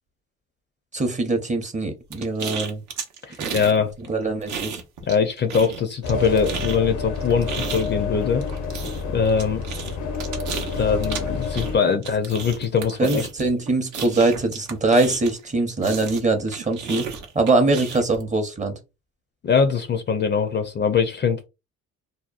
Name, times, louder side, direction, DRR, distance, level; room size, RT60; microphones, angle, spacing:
voice 1, 0.9-2.8 3.4-3.5 4.1-4.8 13.0-17.0 17.3-18.7, right 3 dB, 25° right, 0.6 m, -22 dB
sound 1, 2.1-3.8 4.0-5.2 5.5-15.5 15.8-18.2, right 6 dB, 75° right, 0.7 m, -33 dB
voice 2, 3.3-3.9 5.1-8.4 9.1-9.6 10.8-13.3 19.4-21.5, left 6 dB, 35° left, 0.4 m, -22 dB
sound 2, 6.0-11.8, left 4 dB, 80° left, 0.6 m, -29 dB
2.7 x 2.0 x 2.4 m
cardioid pair, 90°, 30 cm